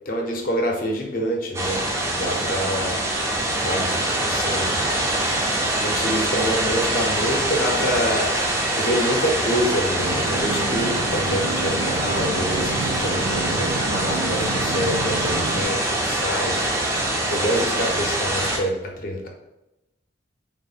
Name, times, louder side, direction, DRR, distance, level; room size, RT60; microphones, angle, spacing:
voice 1, 0.1-1.8 2.1-3.0 3.6-4.9 5.8-8.3 8.8-19.3, equal, 45° left, 1 dB, 0.6 m, -26 dB
sound 1, 1.5-18.6, right 1 dB, 15° right, 0.4 m, -24 dB
sound 2, 10.0-15.7, right 3 dB, 85° right, 0.6 m, -30 dB
3.5 x 2.1 x 3.9 m, 0.94 s
head